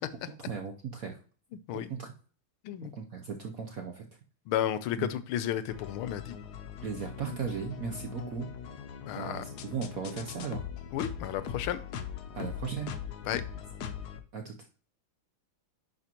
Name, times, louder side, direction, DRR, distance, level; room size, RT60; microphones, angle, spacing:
voice 1, 0.5-1.2 1.9-2.1 2.9-4.1 5.0-5.1 6.8-8.5 9.1-10.7 12.3-12.9 14.3-14.5, right 6 dB, 65° right, 3 dB, 0.9 m, -36 dB
voice 2, 4.5-6.4 9.1-9.4 10.9-11.8 13.3-13.4, left 11 dB, 80° left, 13 dB, 1.4 m, -32 dB
sound 1, 5.7-14.2, left 8 dB, 65° left, 1.1 m, -41 dB
10.5 x 5.2 x 2.9 m, 0.41 s
omnidirectional pair, 2.4 m